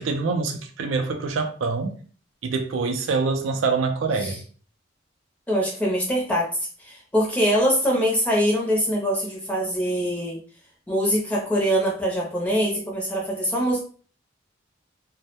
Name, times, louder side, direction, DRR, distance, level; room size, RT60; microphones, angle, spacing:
voice 1, 0.0-1.9 2.4-4.4, right 4 dB, 85° right, 0.4 m, -25 dB
voice 2, 5.5-10.4 10.9-13.8, equal, 5° left, 0.4 m, -23 dB
2.2 x 2.0 x 2.8 m
head